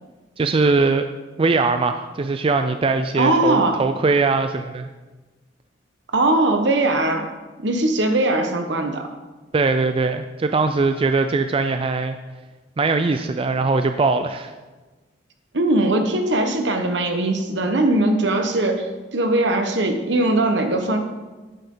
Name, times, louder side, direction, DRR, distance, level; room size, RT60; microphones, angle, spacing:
voice 1, 0.4-1.1 1.4-4.9 9.5-12.2 12.8-14.5, right 3 dB, 30° right, 8 dB, 0.4 m, -21 dB
voice 2, 3.2-3.8 6.1-7.3 7.6-9.1 15.5-18.9 19.1-21.0, right 2 dB, 70° right, 5 dB, 1.3 m, -20 dB
11.0 x 9.1 x 3.8 m, 1.2 s
head